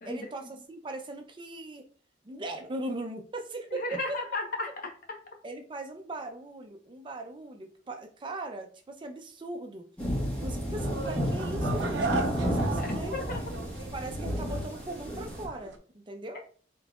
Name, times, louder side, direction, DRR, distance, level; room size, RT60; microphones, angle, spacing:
voice 1, 0.0-1.8 2.2-4.2 5.4-9.9 10.4-13.2 13.9-16.4, right 2 dB, 30° right, 5 dB, 0.5 m, -39 dB
voice 2, 3.8-5.2 12.8-13.4, left 2 dB, 55° left, 3 dB, 0.9 m, -34 dB
sound 1, 10.0-15.5, equal, 10° left, 1.3 m, -31 dB
sound 2, 10.8-15.8, right 3 dB, 80° right, 0.6 m, -37 dB
3.8 x 3.7 x 2.3 m, 0.43 s
head